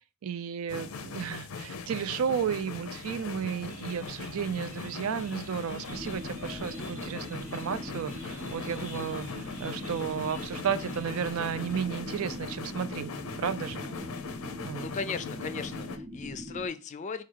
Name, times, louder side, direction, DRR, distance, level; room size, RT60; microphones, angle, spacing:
voice 1, 0.2-13.1 13.4-13.8 14.6-14.9, right 7 dB, 75° right, 0.4 m, -33 dB
sound 1, 0.7-16.0, left 4 dB, 85° left, 0.5 m, -40 dB
sound 2, 3.6-12.3, right 2 dB, 35° right, 0.8 m, -51 dB
sound 3, 5.9-16.7, equal, 5° right, 0.6 m, -42 dB
voice 2, 14.8-17.2, left 5 dB, 35° left, 0.4 m, -36 dB
4.7 x 2.4 x 4.5 m
head